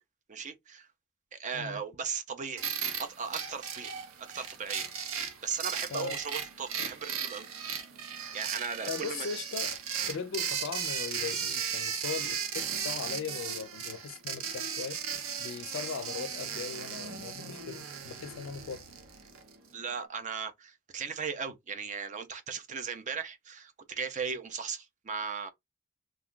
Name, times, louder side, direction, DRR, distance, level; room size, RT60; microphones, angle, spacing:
voice 1, 0.3-0.9 1.3-2.7 3.0-7.5 8.3-9.3 19.7-25.5, right 6 dB, 35° right, 0.5 m, -37 dB
sound 1, 2.6-19.5, right 7 dB, 75° right, 0.7 m, -36 dB
voice 2, 8.9-9.8 10.1-15.0 15.4-18.8, left 5 dB, 65° left, 0.4 m, -39 dB
2.5 x 2.3 x 3.6 m
head